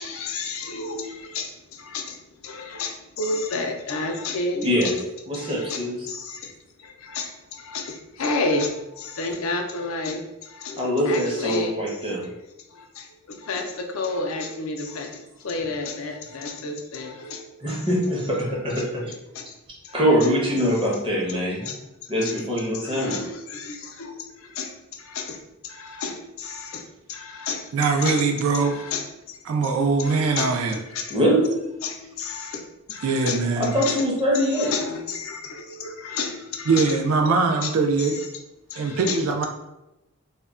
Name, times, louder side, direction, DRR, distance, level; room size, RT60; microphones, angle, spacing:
voice 1, 0.0-4.9 5.3-6.5 6.8-12.1 12.7-17.9 18.8-18.9 19.3-19.4 19.8-20.3 20.6-20.9 21.6-28.3 28.5-29.4 29.6-29.7 30.0-30.6 30.9-31.2 31.8-32.6 32.9-34.0 34.3-37.0 37.6-37.7 38.0-38.3 38.7-39.2, left 3 dB, 60° left, 3 dB, 0.4 m, -31 dB
voice 2, 5.3-5.9 10.8-12.2 17.6-19.1 19.9-21.7 22.1-23.2 31.1-31.4 33.6-34.7, equal, 25° right, -4 dB, 0.6 m, -23 dB
voice 3, 27.7-28.8 29.5-30.8 33.0-33.7 36.7-38.2 38.8-39.5, right 4 dB, 65° right, 4 dB, 0.3 m, -22 dB
2.1 x 2.1 x 3.5 m, 0.92 s
head